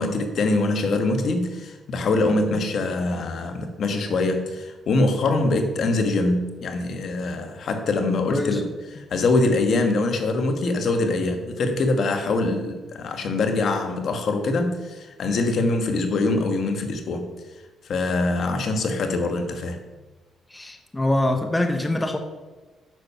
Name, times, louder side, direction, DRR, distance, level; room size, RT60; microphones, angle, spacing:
voice 1, 0.0-8.7 9.0-17.3 17.9-19.8, left 2 dB, 60° left, 6 dB, 1.4 m, -23 dB
voice 2, 8.3-8.6 20.5-22.2, left 1 dB, 15° left, 5 dB, 1.0 m, -24 dB
9.2 x 7.0 x 5.7 m, 1.2 s
cardioid pair, 90°, 0 cm